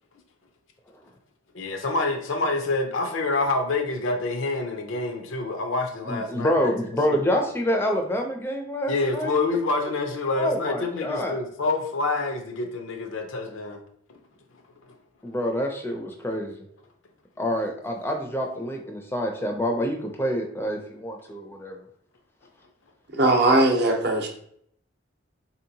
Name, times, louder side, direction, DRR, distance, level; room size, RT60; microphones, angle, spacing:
voice 1, 1.5-6.7 7.1-7.2 8.9-13.8 14.9-15.0, left 3 dB, 80° left, 5 dB, 0.6 m, -27 dB
voice 2, 6.1-9.4 10.3-11.4 15.2-16.6 17.4-21.8, equal, 10° left, 2 dB, 0.4 m, -27 dB
voice 3, 23.1-24.3, right 2 dB, 55° right, 3 dB, 0.7 m, -19 dB
4.0 x 2.8 x 2.7 m, 0.67 s
head